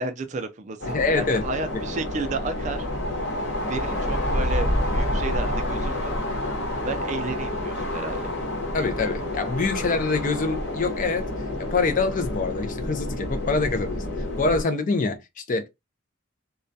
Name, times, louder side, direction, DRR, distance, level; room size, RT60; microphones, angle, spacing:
voice 1, 0.0-2.9 3.6-6.2 6.8-8.2, right 3 dB, 35° right, 0.3 m, -32 dB
sound 1, 0.8-14.6, left 1 dB, 60° left, 0.9 m, -28 dB
voice 2, 0.9-1.4 8.7-11.3 11.6-14.0 14.4-15.7, left 3 dB, 40° left, 0.4 m, -25 dB
2.3 x 2.1 x 2.6 m
head